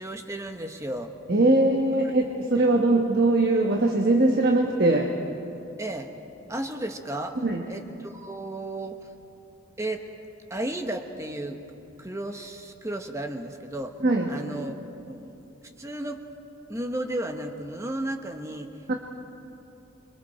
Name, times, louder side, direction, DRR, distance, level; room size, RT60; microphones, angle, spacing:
voice 1, 0.0-1.1 2.6-2.7 5.8-6.1 6.5-9.1 9.8-10.1 10.5-11.6 12.0-14.0 14.3-15.3 15.8-16.2 16.7-18.7, right 1 dB, 15° right, 5 dB, 1.1 m, -34 dB
voice 2, 1.3-5.1 7.4-7.6 14.0-14.3 18.9-19.0, right 2 dB, 50° right, 1 dB, 1.3 m, -21 dB
28.5 x 22.5 x 4.4 m, 2.8 s
head